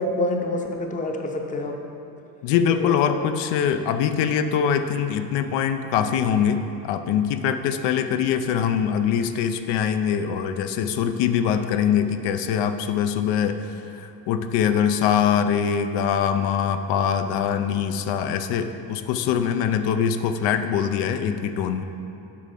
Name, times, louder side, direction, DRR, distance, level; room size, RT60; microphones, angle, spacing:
voice 1, 0.0-1.8 2.5-3.2, left 1 dB, 20° left, 3 dB, 0.6 m, -27 dB
voice 2, 2.4-21.8, left 8 dB, 85° left, 8 dB, 0.6 m, -23 dB
8.6 x 5.1 x 5.7 m, 2.8 s
cardioid pair, 140°, 42 cm